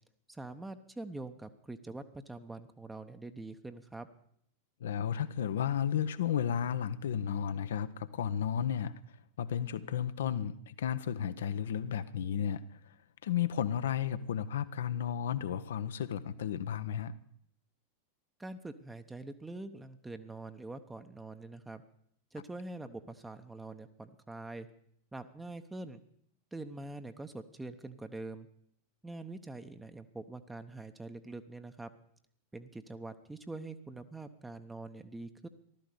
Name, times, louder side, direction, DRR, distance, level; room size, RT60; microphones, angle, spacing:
voice 1, 0.3-4.1 18.4-21.8 22.3-24.7 25.1-26.0 26.5-28.5 29.0-31.9 32.5-35.5, right 2 dB, 10° right, 0.9 m, -44 dB
voice 2, 4.8-8.9 9.4-12.9 13.2-17.1, left 9 dB, 60° left, 0.8 m, -33 dB
15.0 x 12.5 x 6.7 m
figure-of-eight pair, 90°, 0 cm